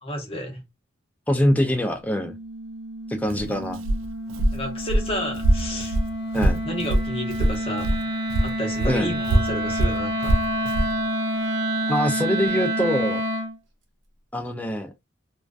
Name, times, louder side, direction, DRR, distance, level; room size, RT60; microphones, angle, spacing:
voice 1, 0.0-0.6 4.5-6.0 6.6-8.0 8.4-10.4, equal, 30° left, 0.8 m, -31 dB
voice 2, 1.3-2.4 3.1-3.8 6.3-6.6 8.9-9.1 11.9-13.2 14.3-14.9, equal, 10° left, 0.3 m, -23 dB
Wind instrument woodwind instrument, 2.1-13.6, right 1 dB, 60° right, 0.7 m, -28 dB
Walk footsteps, 3.2-8.0 8.3-10.9, right 1 dB, 75° right, 0.3 m, -23 dB
2.4 x 2.2 x 2.3 m
head